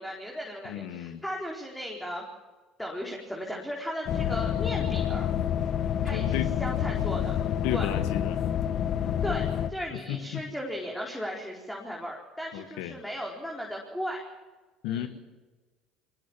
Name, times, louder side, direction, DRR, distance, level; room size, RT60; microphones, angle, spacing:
voice 1, 0.0-2.2 2.8-5.3 6.0-7.3 7.7-7.9 9.2-14.2 14.8-15.1, equal, 5° left, -2 dB, 4.5 m, -36 dB
voice 2, 0.6-1.2 6.1-6.5 7.6-8.4 9.9-10.4 12.5-13.0 14.8-15.1, left 11 dB, 75° left, 10 dB, 1.7 m, -33 dB
sound 1, 4.1-9.7, left 9 dB, 55° left, 1.4 m, -28 dB
23.5 x 18.5 x 7.4 m, 1.3 s
hypercardioid pair, 75°, 0 cm